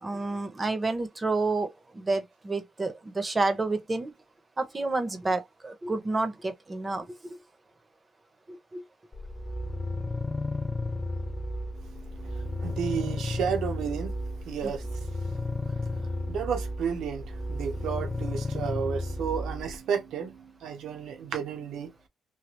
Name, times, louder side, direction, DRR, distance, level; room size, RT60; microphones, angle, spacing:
voice 1, 0.0-4.1 4.6-7.4 8.5-8.8 14.6-14.7, right 3 dB, 25° right, 0.8 m, -30 dB
sound 1, 9.1-19.8, left 2 dB, 20° left, 0.4 m, -33 dB
voice 2, 11.8-14.9 15.4-21.9, right 7 dB, 80° right, 0.9 m, -33 dB
3.2 x 2.3 x 2.9 m
cardioid pair, 90°, 0 cm